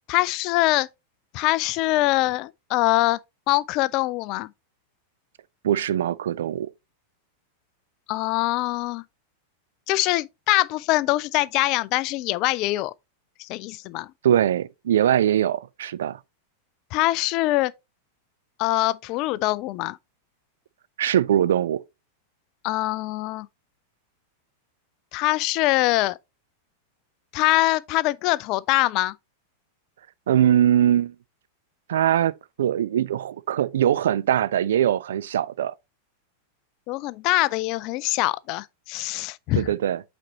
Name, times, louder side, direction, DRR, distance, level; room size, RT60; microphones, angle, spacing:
voice 1, 0.1-0.9 1.3-3.2 3.5-4.5 8.1-9.0 9.9-12.9 13.4-14.1 16.9-17.7 18.6-20.0 22.6-23.5 25.1-26.2 27.3-29.1 36.9-39.7, left 18 dB, 40° left, 0.3 m, -23 dB
voice 2, 5.6-6.7 14.2-16.2 21.0-21.8 30.3-31.1 31.9-32.3 32.6-35.7 39.6-40.0, right 10 dB, 60° right, 0.3 m, -21 dB
8.4 x 4.2 x 2.9 m
figure-of-eight pair, 90°, 0 cm